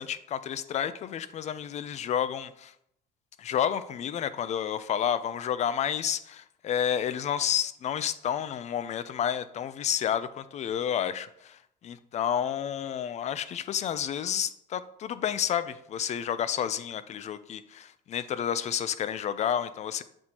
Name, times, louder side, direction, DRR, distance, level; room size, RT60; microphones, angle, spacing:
voice 1, 0.0-2.7 3.4-20.0, left 9 dB, 40° left, 14 dB, 0.4 m, -30 dB
7.8 x 4.3 x 2.9 m, 0.75 s
cardioid pair, 110°, 17 cm